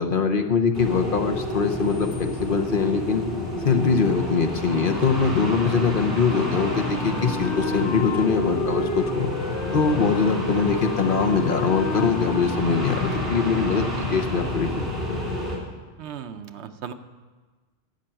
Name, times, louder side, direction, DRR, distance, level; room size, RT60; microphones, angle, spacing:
voice 1, 0.0-3.3 3.6-9.3 9.7-14.9, left 5 dB, 50° left, 6 dB, 1.0 m, -23 dB
sound 1, 0.7-15.6, left 1 dB, 50° right, 3.3 m, -29 dB
Wind instrument woodwind instrument, 6.5-14.2, left 4 dB, 75° left, 1.0 m, -34 dB
voice 2, 16.0-16.9, right 8 dB, 70° right, 9 dB, 1.0 m, -36 dB
11.5 x 6.9 x 8.8 m, 1.3 s
omnidirectional pair, 1.2 m